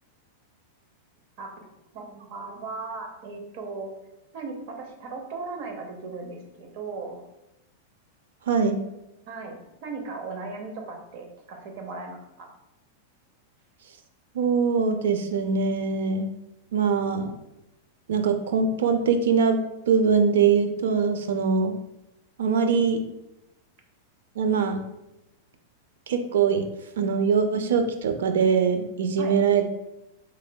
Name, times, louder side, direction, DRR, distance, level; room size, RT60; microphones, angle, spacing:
voice 1, 1.9-3.9 4.3-7.2 9.3-12.5 22.7-22.8 29.2-29.3, right 3 dB, 50° right, 3 dB, 0.7 m, -37 dB
voice 2, 8.5-8.8 14.3-16.3 16.7-17.3 18.1-19.6 19.9-21.7 22.4-23.0 24.4-24.8 26.1-26.6 27.0-29.7, right 6 dB, 85° right, 7 dB, 0.4 m, -22 dB
4.3 x 3.1 x 2.2 m, 0.90 s
supercardioid pair, 155°, 0 cm